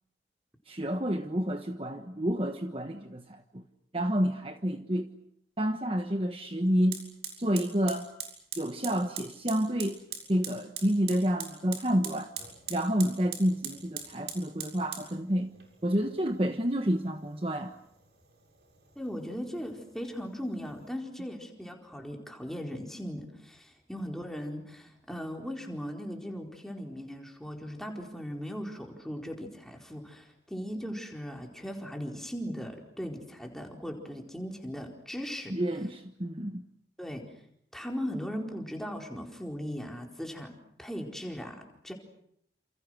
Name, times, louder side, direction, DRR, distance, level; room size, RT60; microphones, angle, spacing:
voice 1, 0.7-3.2 3.5-3.6 3.9-5.1 5.6-7.0 7.4-8.1 8.6-10.0 10.3-12.3 12.7-15.5 15.8-17.7 35.5-36.6, equal, 30° right, 1.3 m, -29 dB
Fire, 6.9-20.9, right 7 dB, 70° right, 7.0 m, -44 dB
voice 2, 19.0-35.6 37.0-37.2 37.7-41.9, equal, 5° left, 4.3 m, -38 dB
29.0 x 28.5 x 6.4 m
head